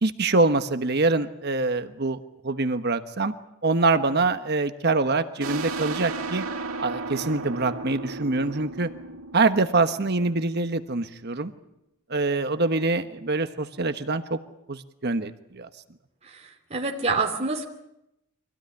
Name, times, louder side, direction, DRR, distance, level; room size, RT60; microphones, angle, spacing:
voice 1, 0.0-2.2 2.4-3.3 3.6-6.4 6.8-8.9 9.3-11.5 12.1-14.4 14.7-15.7, right 3 dB, 50° right, 9 dB, 1.2 m, -24 dB
sound 1, 5.4-10.7, right 3 dB, 85° right, 2.1 m, -35 dB
voice 2, 16.7-17.6, right 4 dB, 30° right, 1 dB, 2.7 m, -26 dB
25.0 x 16.5 x 9.8 m, 0.87 s
head